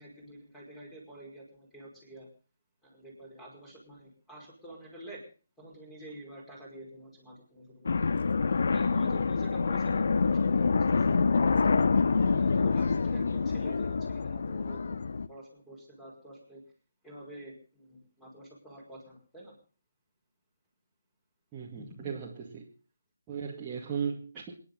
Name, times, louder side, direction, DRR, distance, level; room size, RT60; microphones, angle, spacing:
voice 1, 0.0-2.3 2.8-5.2 5.6-7.9 8.7-11.9 12.3-15.0 15.3-16.6 17.0-19.6 21.8-22.1, right 1 dB, 5° left, -3 dB, 5.4 m, -48 dB
sound 1, 7.9-15.3, left 4 dB, 50° left, 0.8 m, -26 dB
voice 2, 21.5-22.7 23.3-24.5, right 6 dB, 15° right, -6 dB, 2.2 m, -36 dB
27.5 x 10.0 x 4.0 m, 0.39 s
figure-of-eight pair, 150°, 0 cm